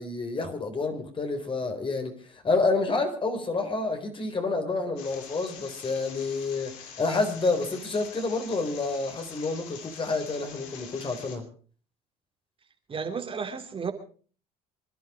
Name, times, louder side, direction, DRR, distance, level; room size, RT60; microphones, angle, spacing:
voice 1, 0.0-11.5, left 3 dB, 30° left, 4.1 m, -29 dB
sound 1, 5.0-11.4, left 7 dB, 90° left, 3.2 m, -45 dB
voice 2, 12.9-13.9, right 5 dB, 35° right, 3.0 m, -32 dB
26.0 x 11.0 x 4.9 m
supercardioid pair, 85°, 16 cm